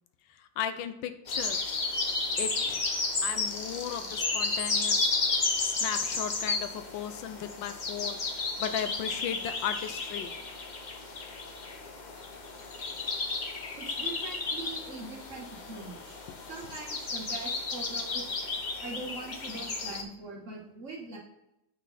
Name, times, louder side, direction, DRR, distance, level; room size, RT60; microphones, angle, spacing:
voice 1, 0.4-1.6 2.4-2.8 3.2-5.1 5.6-8.2 8.6-10.3, left 9 dB, 85° left, 10 dB, 1.3 m, -36 dB
sound 1, 1.3-20.0, left 3 dB, 55° left, 0.5 m, -33 dB
voice 2, 13.8-16.2 16.5-18.4 18.8-21.2, right 3 dB, 40° right, -3 dB, 1.7 m, -42 dB
8.3 x 4.2 x 4.1 m, 0.85 s
omnidirectional pair, 2.0 m